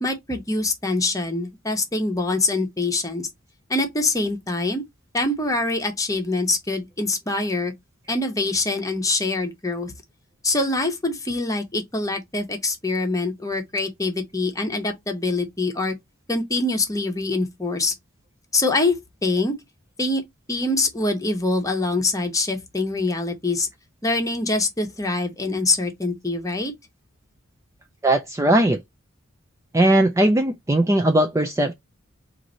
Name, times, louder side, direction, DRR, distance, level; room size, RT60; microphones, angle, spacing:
voice 1, 0.0-3.3 3.7-4.8 5.1-7.7 8.1-9.9 10.4-16.0 16.3-17.9 18.5-19.5 20.0-20.2 20.5-23.7 24.0-26.7, left 2 dB, 15° left, 0.9 m, -24 dB
voice 2, 28.0-28.8 29.7-31.7, right 1 dB, 15° right, 0.4 m, -19 dB
4.6 x 2.6 x 3.9 m
head